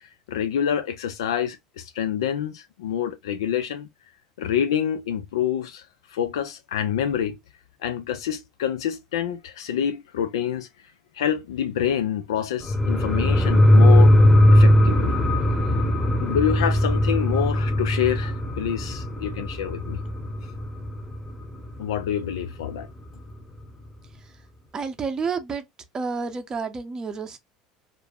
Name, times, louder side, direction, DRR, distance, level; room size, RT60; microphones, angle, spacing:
voice 1, 0.0-3.9 4.4-7.4 7.8-10.7 11.1-14.1 14.5-15.2 16.2-20.0 21.8-22.9, left 9 dB, 90° left, 0.3 m, -27 dB
sound 1, 12.6-21.7 22.1-22.2, left 1 dB, 15° left, 0.8 m, -19 dB
voice 2, 24.7-25.6 25.9-27.4, right 5 dB, 30° right, 0.6 m, -29 dB
2.5 x 2.1 x 3.3 m
hypercardioid pair, 90°, 2 cm